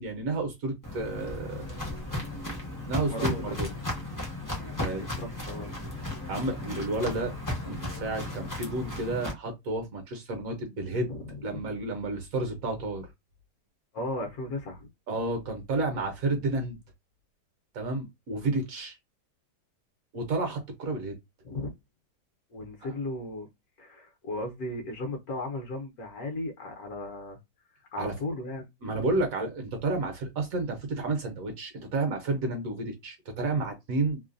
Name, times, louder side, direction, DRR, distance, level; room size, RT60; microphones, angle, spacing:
voice 1, 0.0-1.7 2.9-3.7 4.8-5.1 6.3-7.3 7.7-11.1 11.4-13.1 15.1-16.8 17.7-19.0 20.1-21.2 28.0-28.1 28.8-34.2, right 2 dB, 60° right, 1.0 m, -31 dB
Walk footsteps, 0.8-9.3, left 1 dB, 20° left, 0.4 m, -35 dB
voice 2, 3.1-3.8 5.0-5.8 11.1-11.7 13.9-14.9 21.4-21.7 22.5-23.5 23.8-27.4 27.7-29.2, left 2 dB, 65° left, 1.2 m, -36 dB
3.1 x 2.1 x 2.4 m
omnidirectional pair, 1.9 m